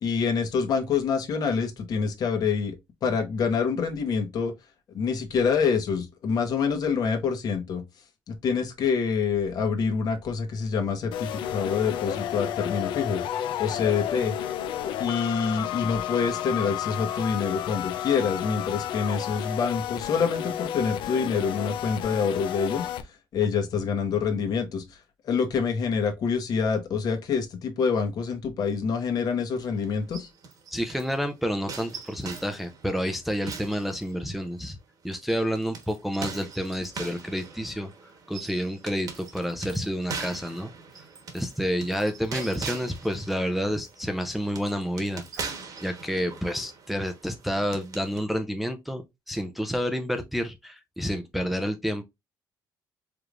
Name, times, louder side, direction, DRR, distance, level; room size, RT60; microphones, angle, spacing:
voice 1, 0.0-2.8 3.0-4.5 4.9-7.8 8.3-13.2 13.6-14.3 15.0-25.0 25.2-30.3, left 6 dB, 50° left, 1.1 m, -26 dB
sound 1, 11.1-23.0, left 11 dB, 80° left, 0.6 m, -32 dB
sound 2, 29.6-31.2 31.7-34.5 35.1-48.2, right 5 dB, 50° right, 1.2 m, -41 dB
voice 2, 30.7-34.8 35.0-37.9 38.3-40.7 41.3-45.5 45.8-52.0, equal, ahead, 0.5 m, -29 dB
4.8 x 3.3 x 2.5 m
cardioid pair, 140°, 8 cm